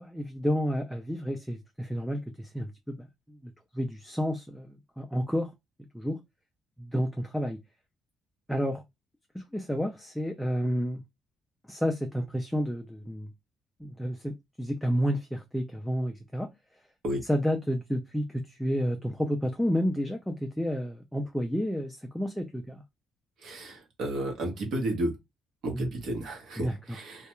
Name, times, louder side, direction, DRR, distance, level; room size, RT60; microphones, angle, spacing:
voice 1, 0.0-5.5 5.9-6.2 6.8-7.6 8.5-8.8 9.3-11.0 11.7-13.3 13.8-14.3 14.6-16.5 17.3-22.8 25.7-25.9 26.6-27.0, equal, ahead, 0.3 m, -30 dB
voice 2, 23.4-25.1 25.6-27.3, right 1 dB, 60° right, 0.9 m, -32 dB
2.3 x 2.2 x 2.9 m
cardioid pair, 170°, 0 cm